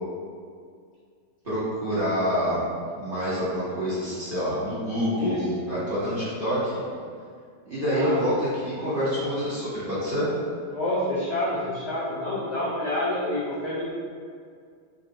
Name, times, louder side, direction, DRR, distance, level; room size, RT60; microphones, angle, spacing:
voice 1, 1.4-2.6 2.9-6.8 7.6-10.3, equal, 35° right, -11 dB, 0.9 m, -27 dB
voice 2, 5.0-5.5 7.8-8.2 10.7-13.9, left 1 dB, 80° left, -9 dB, 0.5 m, -28 dB
3.7 x 3.2 x 3.7 m, 2.2 s
omnidirectional pair, 2.2 m